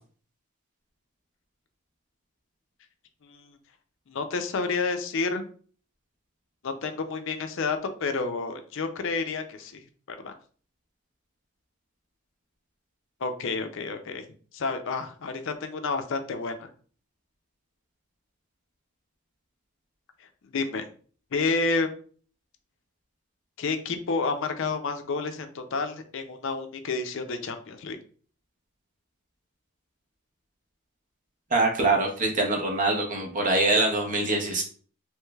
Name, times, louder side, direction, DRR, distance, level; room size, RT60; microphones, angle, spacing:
voice 1, 3.2-3.6 4.1-5.5 6.6-9.8 10.1-10.3 13.2-14.2 14.5-16.7 20.4-20.8 21.3-21.9 23.6-28.0, left 4 dB, 55° left, 7 dB, 0.4 m, -30 dB
voice 2, 31.5-34.6, right 2 dB, 35° right, 1 dB, 0.7 m, -24 dB
3.1 x 3.1 x 2.3 m, 0.44 s
head